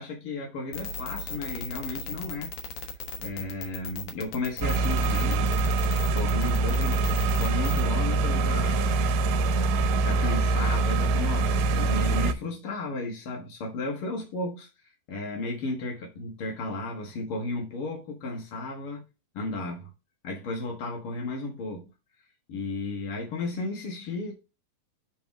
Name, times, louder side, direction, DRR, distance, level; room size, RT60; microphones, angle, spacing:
voice 1, 0.0-2.5 3.2-5.5 6.1-7.0 7.4-9.2 10.0-19.0 19.3-19.9 20.2-21.9 22.5-24.3, left 2 dB, 60° left, 1.4 m, -34 dB
sound 1, 0.7-7.9, left 4 dB, 80° left, 1.4 m, -36 dB
sound 2, 4.6-12.3, right 3 dB, 85° right, 2.6 m, -24 dB
7.9 x 3.5 x 3.5 m
omnidirectional pair, 4.3 m